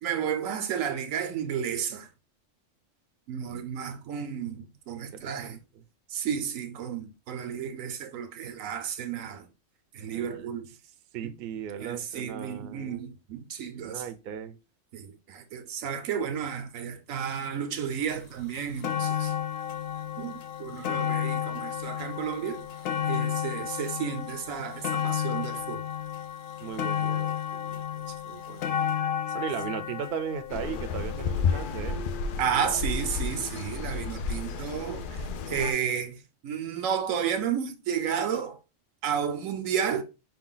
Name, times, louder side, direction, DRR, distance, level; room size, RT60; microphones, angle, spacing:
voice 1, 0.0-2.1 3.3-5.6 6.1-9.5 9.9-10.7 11.2-11.3 11.8-14.0 14.9-19.3 20.2-22.7 23.1-25.8 28.1-28.2 32.4-38.6 39.0-40.0, right 8 dB, 85° right, 1.1 m, -32 dB
voice 2, 5.1-5.8 10.1-10.5 11.1-13.0 13.8-14.6 26.6-28.9 29.3-32.1 32.5-32.8, right 7 dB, 60° right, 0.7 m, -38 dB
sound 1, 18.1-18.2 18.5-31.7 32.5-32.6, left 9 dB, 80° left, 1.0 m, -32 dB
sound 2, 30.5-35.7, left 5 dB, 65° left, 0.5 m, -31 dB
5.6 x 2.3 x 3.7 m
omnidirectional pair, 1.3 m